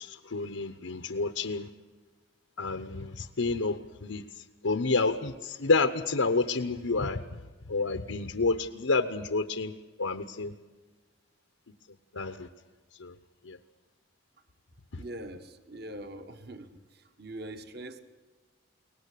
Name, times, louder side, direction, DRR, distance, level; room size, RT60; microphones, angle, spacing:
voice 1, 0.0-1.7 2.6-7.4 7.7-9.7 10.0-10.5 12.1-12.5 13.0-13.2 13.4-13.6, left 3 dB, 90° left, 8 dB, 1.0 m, -29 dB
voice 2, 15.0-18.0, right 1 dB, 50° right, 8 dB, 1.5 m, -43 dB
23.0 x 18.5 x 8.5 m, 1.3 s
head